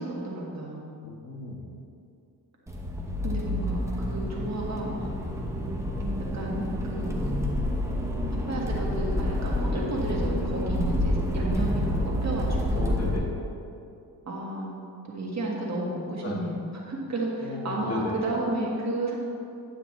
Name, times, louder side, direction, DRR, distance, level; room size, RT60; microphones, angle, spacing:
voice 1, 0.0-0.9 3.2-5.1 6.3-6.6 6.9-7.3 8.3-12.9 14.2-14.8 15.1-19.2, right 1 dB, 40° right, -3 dB, 1.6 m, -32 dB
voice 2, 1.0-1.7 12.7-13.3 16.2-16.3 17.4-18.1, left 2 dB, 35° left, -3 dB, 1.5 m, -35 dB
Accelerating revving vroom, 2.7-13.2, left 1 dB, 5° right, 0.8 m, -28 dB
10.0 x 7.9 x 3.1 m, 2.6 s
cardioid pair, 130°, 41 cm